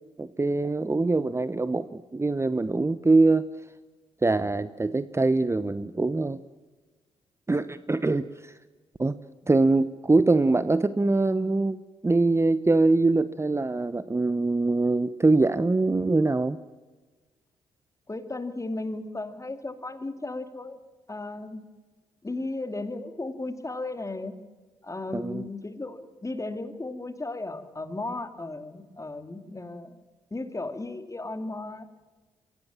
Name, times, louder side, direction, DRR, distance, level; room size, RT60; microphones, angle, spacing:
voice 1, 0.2-3.5 4.2-6.4 7.5-8.5 9.0-9.2 9.5-16.6 25.1-25.5, right 3 dB, 20° right, 14 dB, 0.9 m, -23 dB
voice 2, 18.1-20.8 21.1-21.6 22.2-24.4 24.8-30.0 30.3-31.9, left 2 dB, 25° left, 9 dB, 2.7 m, -35 dB
23.5 x 16.5 x 7.5 m, 1.3 s
hypercardioid pair, 40°, 14 cm